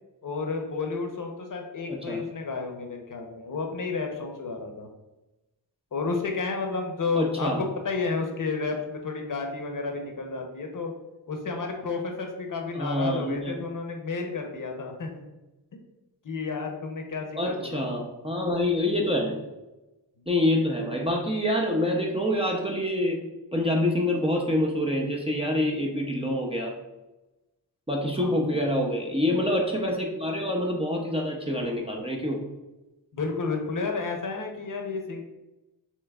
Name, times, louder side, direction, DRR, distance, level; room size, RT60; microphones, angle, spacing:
voice 1, 0.2-4.9 5.9-10.9 11.3-15.2 16.2-18.1 28.2-28.7 33.1-35.2, left 4 dB, 50° left, 3 dB, 0.8 m, -31 dB
voice 2, 1.9-2.2 7.2-7.6 12.7-13.5 17.4-19.4 20.3-23.2 23.5-26.7 27.9-32.4, left 1 dB, 15° right, -1 dB, 0.5 m, -26 dB
7.0 x 3.1 x 2.3 m, 1.0 s
wide cardioid pair, 125°, 43 cm